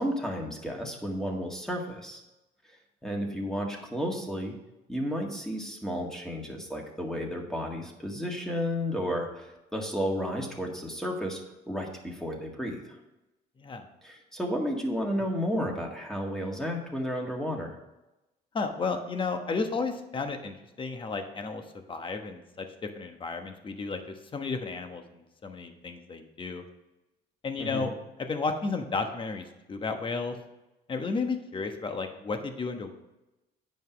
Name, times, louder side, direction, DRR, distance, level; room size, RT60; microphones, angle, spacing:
voice 1, 0.0-2.2 3.0-4.5 4.9-11.4 11.7-12.8 14.0-17.8 27.6-27.9, equal, 5° left, 0 dB, 1.9 m, -32 dB
voice 2, 13.6-13.9 18.5-21.6 21.9-26.6 27.4-27.9 28.2-30.4 30.9-32.9, left 4 dB, 30° left, 6 dB, 1.2 m, -33 dB
9.6 x 5.4 x 5.1 m, 0.98 s
cardioid pair, 110°, 17 cm